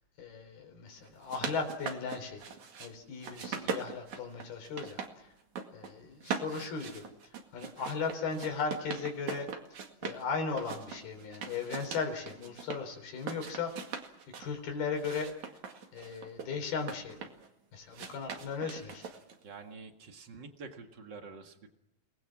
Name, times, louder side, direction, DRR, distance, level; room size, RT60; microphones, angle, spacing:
voice 1, 0.2-2.4 2.8-5.0 5.7-7.0 7.5-9.5 10.0-13.7 14.4-15.3 15.9-17.2 17.7-19.0, left 5 dB, 85° left, 5 dB, 5.8 m, -36 dB
sound 1, 1.0-2.9 3.2-5.1 5.4-5.9 6.2-10.2 10.6-12.8 13.2-14.5 15.0-17.5 17.9-19.4, right 6 dB, 55° right, 3.2 m, -41 dB
voice 2, 19.4-21.7, right 4 dB, 40° right, 5 dB, 1.8 m, -47 dB
29.5 x 20.0 x 6.2 m, 0.86 s
omnidirectional pair, 4.3 m